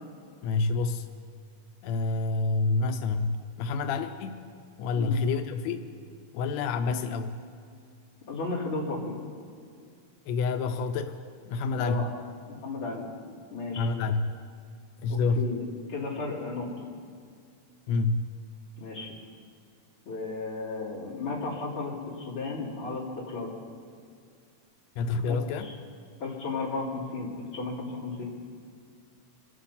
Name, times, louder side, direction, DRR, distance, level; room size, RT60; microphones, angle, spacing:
voice 1, 0.4-1.1 1.8-4.4 4.8-5.9 6.3-7.4 10.3-11.2 11.5-12.1 13.8-14.3 15.0-15.5 17.9-18.3 25.0-25.7, left 4 dB, 80° left, 7 dB, 1.5 m, -28 dB
voice 2, 8.3-9.2 11.7-12.1 12.5-13.1 13.5-13.9 15.1-15.6 15.9-16.9 18.8-19.1 20.1-23.5 25.3-25.7 26.2-28.3, left 3 dB, 40° left, -6 dB, 3.8 m, -34 dB
25.5 x 8.9 x 5.6 m, 2.2 s
omnidirectional pair, 3.7 m